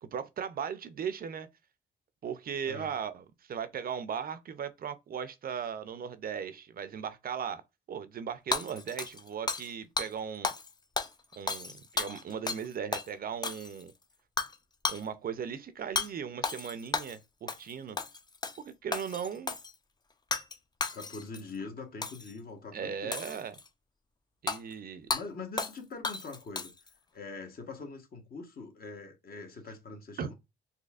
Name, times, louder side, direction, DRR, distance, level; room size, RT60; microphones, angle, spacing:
voice 1, 0.0-1.5 2.2-7.6 7.9-10.5 11.4-13.9 14.9-18.0 18.6-19.5 22.7-23.6 24.4-25.1 30.2-30.3, right 7 dB, 50° right, 0.5 m, -37 dB
Hammer / Shatter, 8.5-9.7 10.0-10.1 10.4-10.7 11.0-12.7 12.9-13.1 13.4-13.9 14.4-14.6 14.8-15.0 16.0-16.1 16.4-17.2 17.5-17.7 18.0-18.6 18.9-19.7 20.3-20.6 20.8-21.4 22.0-22.3 23.1-23.7 24.5-24.6 25.1-25.2 25.6-25.8 26.0-26.9, left 4 dB, 20° left, 0.5 m, -33 dB
voice 2, 20.9-23.2 25.1-26.7 27.1-30.3, left 4 dB, 50° left, 1.2 m, -43 dB
4.1 x 2.7 x 2.4 m
cardioid pair, 90°, 20 cm